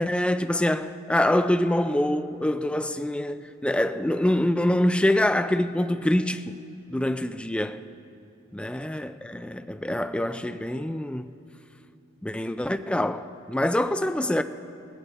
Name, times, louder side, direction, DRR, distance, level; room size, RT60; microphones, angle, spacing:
voice 1, 0.0-6.6 6.9-7.8 8.5-11.3 12.2-14.4, left 1 dB, 5° left, 0.3 m, -25 dB
18.5 x 14.5 x 4.1 m
head